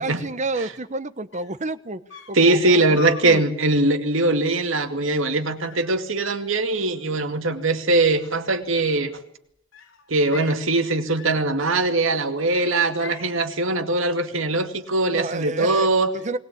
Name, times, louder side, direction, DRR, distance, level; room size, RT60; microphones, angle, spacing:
voice 1, 0.0-2.0 2.3-3.4 15.1-15.9 16.1-16.4, right 2 dB, 35° right, 12 dB, 1.1 m, -30 dB
sound 1, 1.0-1.1 1.3-1.7 2.1-2.5 3.0-3.3 3.7-4.0 4.4-4.8 5.6-6.4 6.7-7.4 8.6-9.3 9.7-10.7 11.2-11.5 11.8-12.1 12.5-13.3, left 5 dB, 80° left, 3.5 m, -43 dB
voice 2, 2.3-9.1 10.1-16.1, right 2 dB, 75° right, 7 dB, 2.3 m, -21 dB
20.5 x 20.0 x 8.6 m, 0.71 s
head